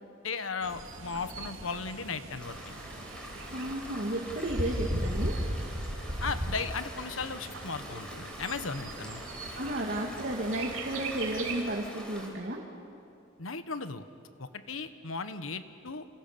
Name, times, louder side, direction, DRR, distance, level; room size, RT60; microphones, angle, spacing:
voice 1, 0.2-2.8 6.2-9.2 13.4-14.0 14.4-16.1, left 4 dB, 85° left, 10 dB, 1.4 m, -36 dB
Bird, 0.6-11.6, right 1 dB, 80° right, 3.2 m, -38 dB
sound 1, 2.4-12.3, equal, 5° left, 4.9 m, -45 dB
voice 2, 3.5-5.5 9.5-12.6, right 1 dB, 50° right, -2 dB, 2.6 m, -33 dB
27.5 x 27.5 x 7.0 m, 2.7 s
head